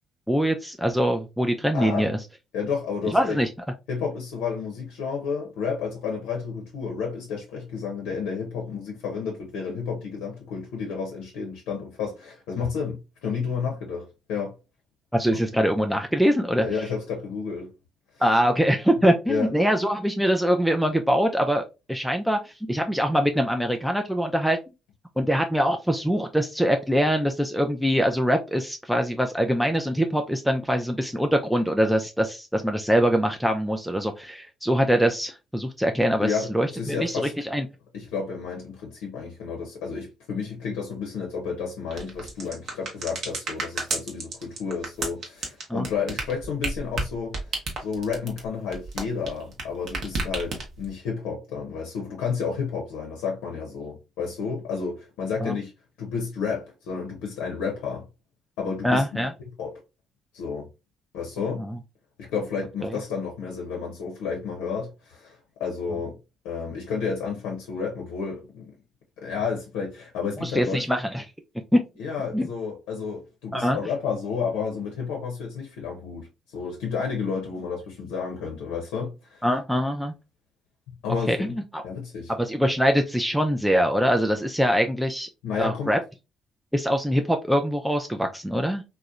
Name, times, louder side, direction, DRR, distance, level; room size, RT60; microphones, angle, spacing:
voice 1, 0.3-2.2 3.1-3.5 15.1-16.7 18.2-24.6 25.2-37.7 45.7-45.9 55.4-55.6 58.8-59.3 61.6-61.8 62.8-63.0 70.4-71.2 71.7-71.8 72.3-72.5 73.5-73.8 79.4-80.1 81.3-81.8 82.4-85.3 85.6-86.0 86.7-88.8, equal, ahead, 0.3 m, -23 dB
voice 2, 1.7-2.1 2.5-3.4 3.9-14.5 15.3-15.4 16.6-17.7 19.3-19.5 36.2-37.3 37.9-47.5 47.8-55.7 56.0-58.0 58.6-59.2 59.6-59.7 60.3-60.7 61.1-61.6 62.2-66.2 66.4-68.8 69.2-70.8 72.0-76.3 76.5-79.4 81.0-81.6 81.8-82.3 85.4-85.9, left 5 dB, 80° left, 0.6 m, -31 dB
sound 1, 41.9-49.6 49.9-50.9, right 3 dB, 60° right, 0.8 m, -31 dB
2.7 x 2.0 x 2.3 m
hypercardioid pair, 55°, 0 cm